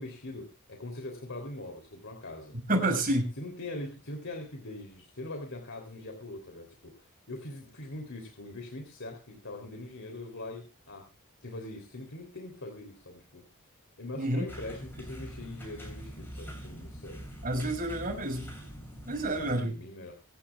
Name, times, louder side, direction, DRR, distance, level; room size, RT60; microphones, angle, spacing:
voice 1, 0.0-2.6 3.4-11.0 11.4-13.4 14.0-17.2 19.4-20.1, left 2 dB, 60° left, 3 dB, 3.4 m, -42 dB
voice 2, 2.7-3.3 14.2-14.4 17.4-18.5 19.1-19.8, right 1 dB, 40° right, 4 dB, 6.1 m, -29 dB
sound 1, 14.5-19.5, equal, 10° left, 7.1 m, -44 dB
26.0 x 11.5 x 2.4 m, 0.31 s
head